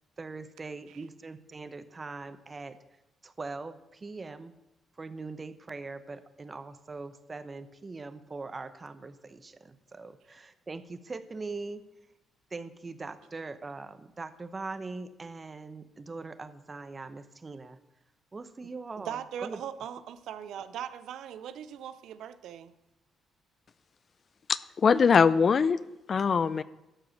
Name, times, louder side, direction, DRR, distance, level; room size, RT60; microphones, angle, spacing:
voice 1, 0.2-2.8 3.2-4.5 5.0-11.8 12.5-17.8 18.3-19.6, right 3 dB, 30° right, 12 dB, 0.7 m, -41 dB
voice 2, 19.0-22.7, right 9 dB, 80° right, 13 dB, 0.5 m, -40 dB
voice 3, 24.5-25.8 26.1-26.6, left 6 dB, 45° left, 17 dB, 0.4 m, -22 dB
12.0 x 4.8 x 6.4 m, 0.94 s
cardioid pair, 90°, 0 cm